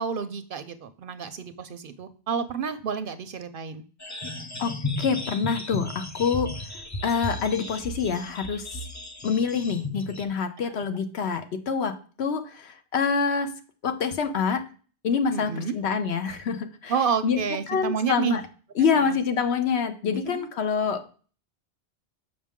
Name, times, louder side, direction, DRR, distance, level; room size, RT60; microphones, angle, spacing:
voice 1, 0.0-3.8 10.6-10.7 15.3-15.8 16.9-18.4 18.9-19.2 20.2-20.5, right 6 dB, 60° right, 11 dB, 0.7 m, -30 dB
sound 1, 4.0-10.2, left 2 dB, 20° left, 0.5 m, -35 dB
voice 2, 4.6-6.5 7.0-8.8 9.2-13.5 13.8-14.6 15.0-16.9 17.2-17.4 17.7-18.4 18.8-21.1, left 6 dB, 70° left, 7 dB, 1.0 m, -26 dB
6.9 x 5.3 x 3.6 m, 0.39 s
omnidirectional pair, 1.1 m